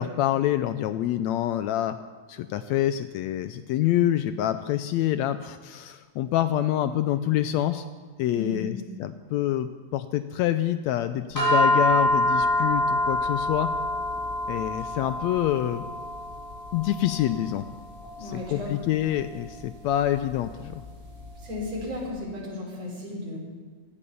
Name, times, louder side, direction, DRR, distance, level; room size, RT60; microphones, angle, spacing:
voice 1, 0.0-1.9 2.3-7.8 8.2-13.7 14.5-15.9 16.7-17.6 18.2-20.8, left 12 dB, 80° left, 11 dB, 1.7 m, -26 dB
voice 2, 8.3-8.8 18.2-18.7 21.4-23.4, left 2 dB, 55° right, -3 dB, 5.6 m, -34 dB
sound 1, 11.4-21.8, left 1 dB, 5° left, 6.2 m, -27 dB
17.0 x 12.5 x 6.9 m, 1.5 s
omnidirectional pair, 3.4 m